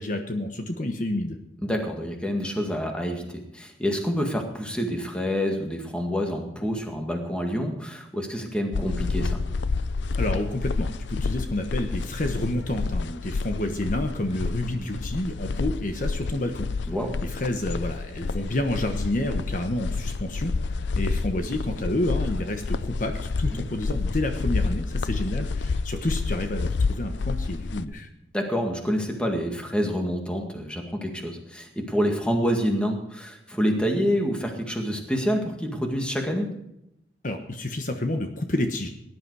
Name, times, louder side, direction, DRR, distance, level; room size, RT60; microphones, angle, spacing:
voice 1, 0.0-1.4 10.2-16.7 17.2-28.1 37.2-38.9, left 1 dB, 45° left, 5 dB, 1.1 m, -29 dB
voice 2, 1.6-3.2 3.5-9.4 16.9-17.1 23.5-23.6 28.3-36.5, equal, 5° left, 2 dB, 1.9 m, -27 dB
sound 1, 8.7-27.9, left 4 dB, 85° left, 0.5 m, -29 dB
18.5 x 11.0 x 4.8 m, 0.82 s
head